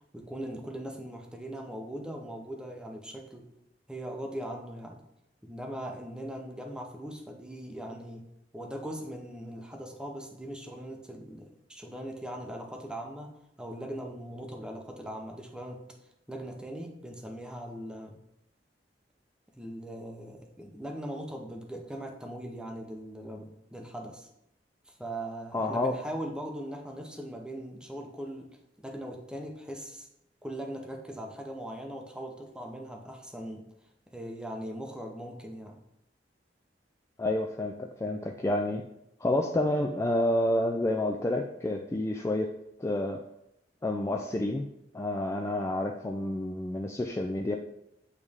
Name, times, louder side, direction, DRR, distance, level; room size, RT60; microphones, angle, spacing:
voice 1, 0.1-3.5 3.9-5.0 5.4-8.3 8.5-16.0 16.3-18.2 19.5-24.3 24.9-30.1 30.4-33.7 34.1-35.8, right 1 dB, 5° right, 2 dB, 0.7 m, -40 dB
voice 2, 25.5-25.9 37.2-38.8 39.2-42.5 42.8-43.2 43.8-44.7 44.9-47.6, left 1 dB, 15° left, 2 dB, 0.3 m, -29 dB
8.4 x 3.2 x 3.5 m, 0.82 s
head